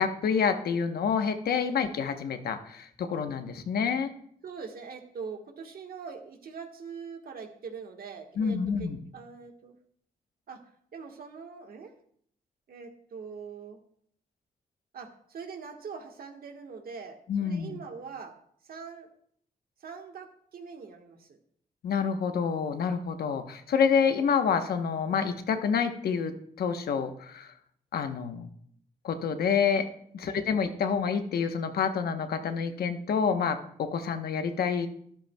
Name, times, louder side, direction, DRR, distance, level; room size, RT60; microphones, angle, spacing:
voice 1, 0.0-4.1 8.4-9.0 17.3-17.8 21.8-27.5 27.9-28.5 29.0-29.8 30.1-34.9, left 6 dB, 80° left, 7 dB, 1.0 m, -28 dB
voice 2, 4.4-9.8 10.5-10.6 10.9-11.9 12.7-13.8 14.9-18.4 18.6-19.1 19.8-21.4 30.2-30.6, right 5 dB, 75° right, 4 dB, 1.4 m, -43 dB
13.0 x 11.5 x 2.2 m, 0.64 s
cardioid pair, 80°, 16 cm